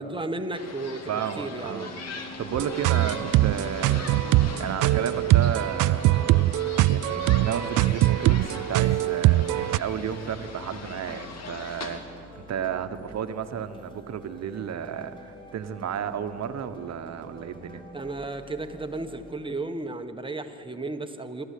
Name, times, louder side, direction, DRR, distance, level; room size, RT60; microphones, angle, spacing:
voice 1, 0.0-1.9 17.9-21.4, right 2 dB, 15° right, 7 dB, 1.4 m, -34 dB
sound 1, 0.6-12.0, left 4 dB, 60° left, 2.2 m, -40 dB
voice 2, 1.1-1.9 2.4-4.2 4.6-6.6 6.9-17.8, right 8 dB, 60° right, 9 dB, 1.2 m, -33 dB
sound 2, 2.4-19.3, equal, 15° left, 4.2 m, -48 dB
sound 3, 2.6-9.8, right 16 dB, 85° right, 0.5 m, -22 dB
26.0 x 13.0 x 8.5 m, 2.8 s
cardioid pair, 90°, 30 cm